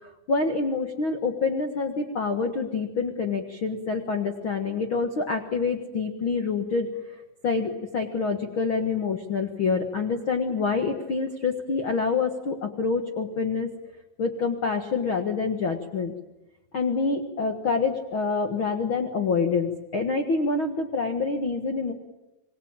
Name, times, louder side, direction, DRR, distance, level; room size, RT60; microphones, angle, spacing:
voice 1, 0.0-7.1 7.4-13.7 14.2-16.1 16.7-21.9, left 4 dB, 90° left, 5 dB, 1.1 m, -27 dB
27.0 x 21.0 x 8.9 m, 1.0 s
omnidirectional pair, 5.1 m